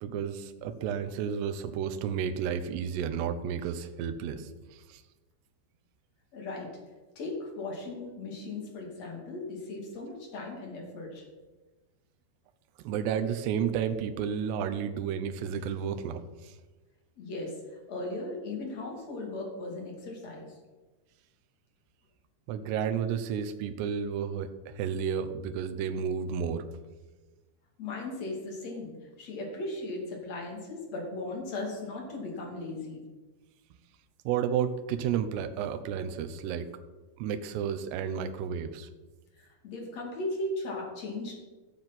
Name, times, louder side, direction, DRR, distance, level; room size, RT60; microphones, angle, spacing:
voice 1, 0.0-4.5 4.9-5.0 12.8-16.5 22.5-26.7 34.3-36.7 37.2-38.9, right 8 dB, 75° right, 9 dB, 2.8 m, -32 dB
voice 2, 6.3-6.9 7.1-11.2 17.2-20.6 27.8-33.0 39.3-41.3, left 2 dB, 40° left, 0 dB, 3.3 m, -37 dB
15.5 x 7.2 x 6.0 m, 1.2 s
omnidirectional pair, 5.2 m